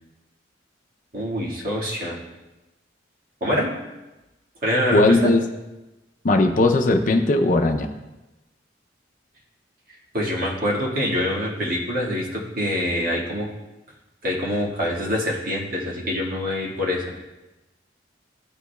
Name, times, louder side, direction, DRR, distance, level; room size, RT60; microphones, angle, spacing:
voice 1, 1.1-2.2 3.4-3.7 4.6-5.3 9.9-13.5 14.2-17.0, left 1 dB, 50° right, -4 dB, 1.7 m, -25 dB
voice 2, 4.9-5.4 6.2-7.9, left 2 dB, 45° left, 5 dB, 0.5 m, -18 dB
13.0 x 5.0 x 2.2 m, 1.0 s
head